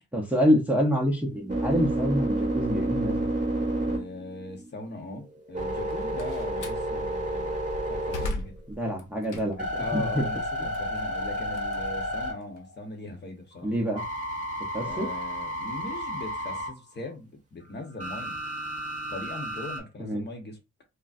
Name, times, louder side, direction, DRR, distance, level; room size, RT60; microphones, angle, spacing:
voice 1, 0.1-3.3 8.7-10.2 10.6-10.7 13.6-14.1 14.7-15.1 20.0-20.2, equal, 5° right, 0.6 m, -26 dB
sound 1, 1.2-4.7 5.1-8.7 9.2-12.8 13.9-16.7 18.0-19.8, right 1 dB, 25° right, 1.3 m, -31 dB
voice 2, 3.9-8.5 9.7-13.7 14.8-18.4 19.1-20.6, left 2 dB, 35° left, 0.9 m, -39 dB
Slam, 5.7-6.9 7.4-9.8 10.2-12.6, left 2 dB, 80° left, 0.7 m, -38 dB
3.8 x 2.1 x 2.4 m
cardioid pair, 135°, 31 cm